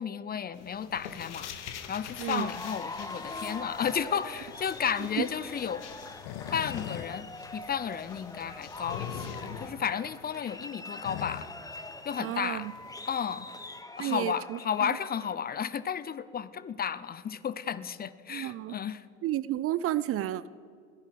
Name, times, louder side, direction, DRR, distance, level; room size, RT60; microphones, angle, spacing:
voice 1, 0.0-1.5 1.9-5.8 6.5-11.5 12.0-12.7 13.1-13.5 14.0-19.1, left 8 dB, 25° left, 16 dB, 0.7 m, -33 dB
sound 1, 0.5-9.7, left 8 dB, 80° left, 1.2 m, -44 dB
sound 2, 2.3-15.3, left 2 dB, 10° left, 1.2 m, -43 dB
sound 3, 3.0-13.8, left 12 dB, 60° left, 0.9 m, -46 dB
voice 2, 12.2-12.7 14.0-15.0 18.3-18.8 19.2-20.5, right 13 dB, 40° right, 17 dB, 0.5 m, -31 dB
14.5 x 10.5 x 7.8 m, 2.2 s
hypercardioid pair, 65°, 35 cm